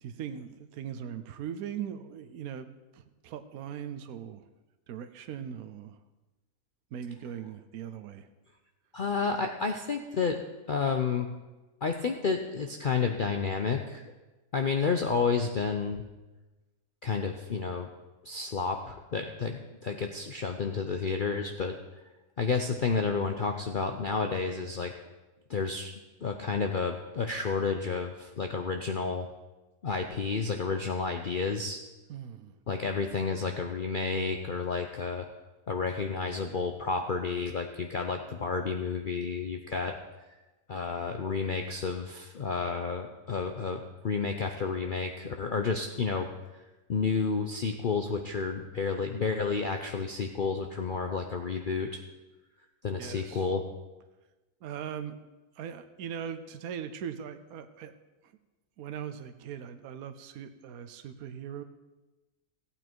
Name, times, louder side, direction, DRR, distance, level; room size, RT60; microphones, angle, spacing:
voice 1, 0.0-4.5 4.9-6.0 6.9-8.3 32.1-32.6 53.0-53.5 54.6-55.2 55.6-57.9 58.8-61.6, right 8 dB, 75° right, 8 dB, 1.2 m, -40 dB
voice 2, 8.9-10.4 10.7-11.3 11.8-14.0 14.5-16.0 17.0-17.9 18.2-21.7 22.4-24.9 25.5-25.9 26.2-29.3 29.8-31.8 32.7-35.3 35.7-40.0 40.7-46.3 46.9-52.0 52.8-53.6, left 5 dB, 50° left, 4 dB, 0.7 m, -30 dB
15.0 x 8.9 x 4.5 m, 1.1 s
omnidirectional pair, 1.6 m